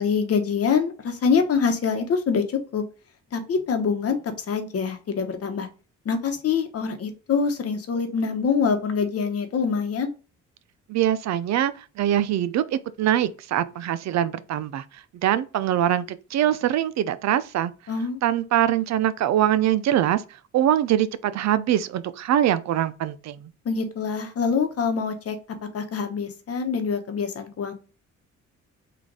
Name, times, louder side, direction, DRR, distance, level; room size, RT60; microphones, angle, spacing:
voice 1, 0.0-2.8 3.3-5.7 6.0-10.1 17.9-18.2 23.6-25.4 25.7-27.7, left 5 dB, 50° left, 1.0 m, -25 dB
voice 2, 10.9-17.7 18.2-20.2 20.5-23.4, right 11 dB, 65° right, 0.5 m, -23 dB
3.9 x 2.5 x 4.6 m
cardioid pair, 90°, 30 cm